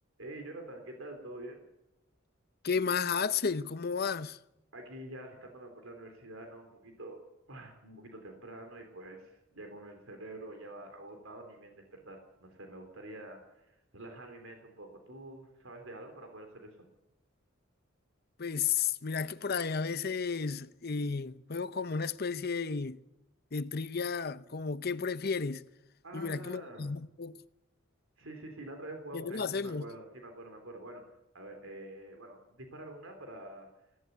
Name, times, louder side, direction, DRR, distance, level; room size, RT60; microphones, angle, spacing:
voice 1, 0.2-1.6 4.7-7.2 7.5-16.9 26.0-26.9 28.2-31.0 31.3-33.7, right 1 dB, 85° right, 3.7 m, -47 dB
voice 2, 2.6-4.4 18.4-23.0 23.5-25.6 26.1-27.4 29.1-29.9, left 5 dB, 50° left, 0.7 m, -33 dB
21.0 x 17.0 x 8.3 m
head